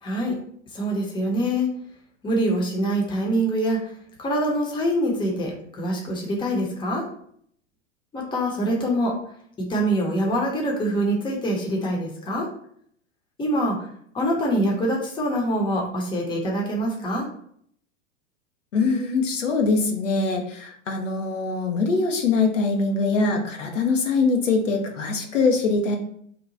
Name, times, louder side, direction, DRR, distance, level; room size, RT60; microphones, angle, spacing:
voice 1, 0.0-0.4 0.7-1.7 2.2-3.9 4.2-7.1 8.1-9.2 9.6-12.5 13.4-13.9 14.1-17.3, equal, 15° left, -1 dB, 0.7 m, -24 dB
voice 2, 18.7-26.0, left 4 dB, 80° left, 2 dB, 0.7 m, -23 dB
2.9 x 2.2 x 3.8 m, 0.65 s
hypercardioid pair, 95°, 37 cm